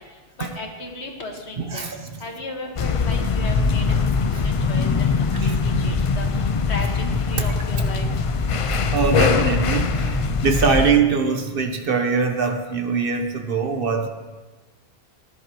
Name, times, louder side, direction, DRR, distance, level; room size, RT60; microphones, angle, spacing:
voice 1, 0.4-1.9 2.2-4.0 4.4-4.9 5.2-8.1, left 2 dB, 90° left, 2 dB, 1.8 m, -35 dB
voice 2, 1.7-2.1 4.3-4.4 4.9-5.0 5.4-6.0 8.9-14.1, right 5 dB, 60° right, 5 dB, 1.2 m, -23 dB
sound 1, 2.8-10.9, left 5 dB, 45° left, 0.4 m, -22 dB
sound 2, 3.2-12.0, right 6 dB, 80° right, 1.0 m, -36 dB
18.5 x 10.0 x 3.0 m, 1.3 s
omnidirectional pair, 1.1 m